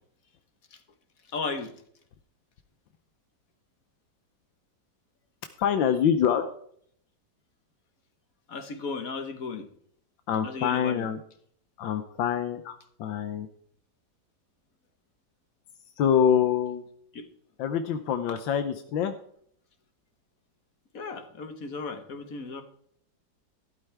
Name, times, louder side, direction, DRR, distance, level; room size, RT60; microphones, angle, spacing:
voice 1, 1.3-1.7 8.5-9.7 10.4-11.0 17.1-17.2 20.9-22.6, left 4 dB, 50° left, 8 dB, 1.6 m, -35 dB
voice 2, 5.6-6.5 10.3-11.2 11.8-13.5 16.0-16.8 17.6-19.1, left 8 dB, 90° left, 8 dB, 1.6 m, -25 dB
12.5 x 12.0 x 3.4 m, 0.63 s
omnidirectional pair, 2.0 m